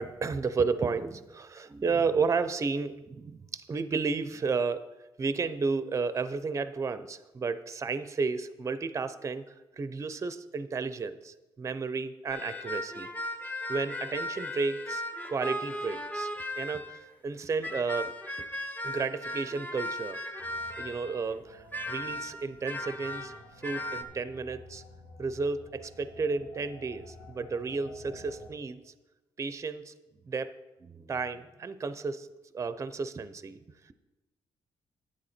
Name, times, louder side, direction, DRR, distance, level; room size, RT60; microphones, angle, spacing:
voice 1, 0.0-4.9 5.2-13.1 13.7-16.3 16.6-18.1 18.8-20.2 20.8-24.8 25.2-28.9 29.4-29.9 30.2-30.5 30.8-32.3 32.5-33.6 33.9-34.0, right 4 dB, 30° right, 13 dB, 0.6 m, -32 dB
sound 1, 12.3-17.0 17.6-21.2 21.7-24.0, left 1 dB, 15° left, 1.0 m, -37 dB
sound 2, 20.4-28.5, left 1 dB, 70° left, 2.8 m, -52 dB
9.6 x 8.7 x 4.3 m, 1.0 s
cardioid pair, 95°, 10 cm